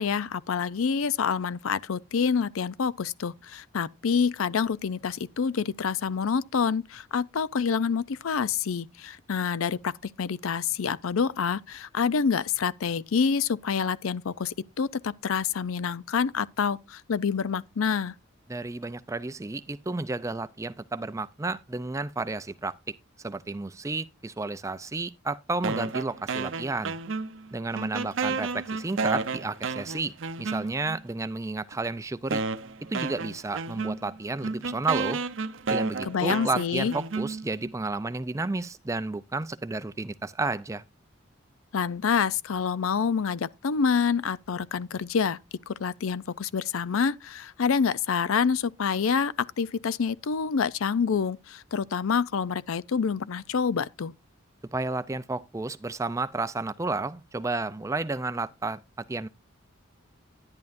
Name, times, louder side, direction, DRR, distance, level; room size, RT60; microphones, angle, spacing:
voice 1, 0.0-18.1 36.0-36.9 41.7-45.4 45.7-54.1, left 6 dB, 80° left, 0.5 m, -27 dB
voice 2, 18.5-22.8 23.2-27.0 27.5-32.4 32.9-35.2 35.7-40.8 54.7-58.8 59.1-59.3, right 3 dB, 15° right, 0.4 m, -32 dB
sound 1, 25.6-27.5 27.7-31.0 31.7-31.8 32.3-37.7, right 4 dB, 65° right, 0.7 m, -32 dB
11.0 x 10.5 x 2.5 m
head